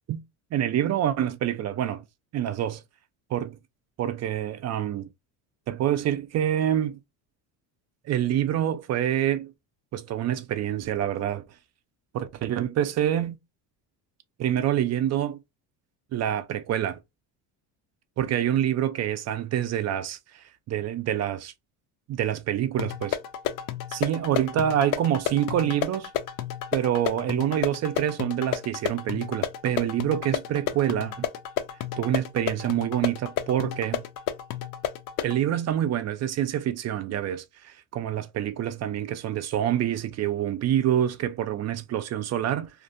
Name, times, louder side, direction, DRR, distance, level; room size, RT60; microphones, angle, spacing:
voice 1, 0.5-2.0 2.3-2.8 3.3-3.5 4.0-5.1 5.7-7.0 8.1-9.5 9.9-11.4 12.1-13.4 14.4-15.4 16.1-17.0 18.2-21.5 22.1-23.2 23.9-26.1 26.7-31.3 32.0-34.0 35.2-42.7, right 11 dB, 40° right, 0.4 m, -26 dB
sound 1, 22.8-35.4, left 11 dB, 50° left, 0.4 m, -32 dB
2.5 x 2.4 x 2.4 m
supercardioid pair, 105°, 45 cm